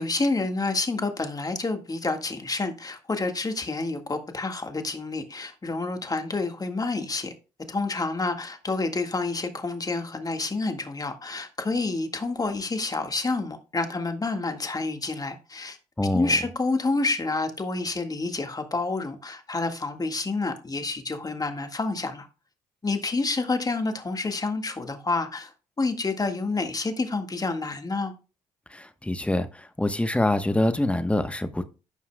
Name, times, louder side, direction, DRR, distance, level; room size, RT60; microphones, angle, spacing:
voice 1, 0.0-7.3 7.7-15.8 16.1-22.3 22.8-25.5 25.8-28.1, left 3 dB, 25° left, 1.7 m, -28 dB
voice 2, 16.0-16.3 28.7-31.6, left 1 dB, 10° left, 1.1 m, -25 dB
14.5 x 5.5 x 2.3 m
supercardioid pair, 60°, 15 cm